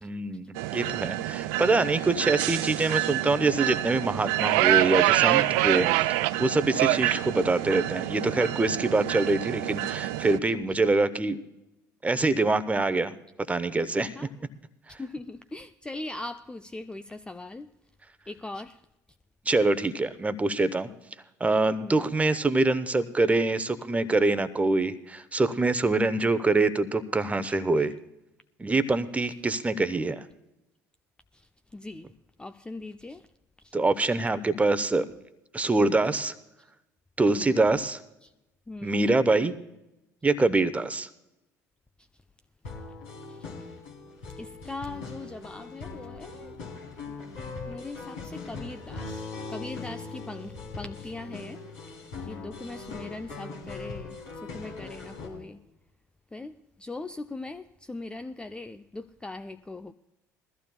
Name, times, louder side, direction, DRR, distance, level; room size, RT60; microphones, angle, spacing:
voice 1, 0.0-11.4 12.0-13.1 13.5-14.1 19.5-20.9 21.4-27.9 28.6-30.2 33.7-35.1 35.5-36.3 37.2-38.0 38.8-39.5 40.2-41.1, right 3 dB, 15° right, 0.8 m, -25 dB
sound 1, 0.6-10.4, right 16 dB, 60° right, 0.4 m, -26 dB
voice 2, 15.0-17.7 18.3-18.8 21.8-22.1 27.4-27.6 31.3-32.1 32.4-33.3 33.6-33.8 37.3-37.7 38.2-38.3 38.7-39.2 43.3-43.5 44.4-46.6 47.7-51.6 52.2-55.6 56.3-59.9, left 2 dB, 10° left, 0.4 m, -40 dB
sound 2, 42.6-55.3, left 4 dB, 65° left, 3.5 m, -40 dB
21.5 x 14.5 x 2.3 m
figure-of-eight pair, 60°, 9 cm